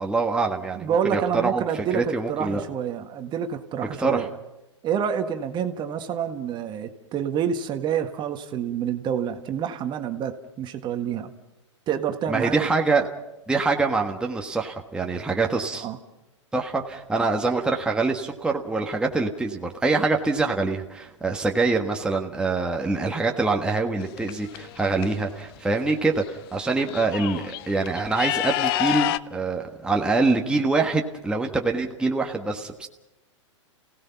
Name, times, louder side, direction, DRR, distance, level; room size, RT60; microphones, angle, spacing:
voice 1, 0.0-2.7 4.0-4.3 12.3-13.1 13.5-15.9 16.5-32.9, right 3 dB, 5° right, 1 dB, 1.5 m, -25 dB
voice 2, 0.8-4.3 4.8-11.3 11.9-12.8 15.8-16.0, right 8 dB, 30° right, 7 dB, 1.6 m, -28 dB
sound 1, 24.0-25.1 26.2-26.3 26.6-29.2, left 15 dB, 50° left, 0.7 m, -28 dB
29.0 x 17.5 x 5.8 m, 0.95 s
hypercardioid pair, 115°, 16 cm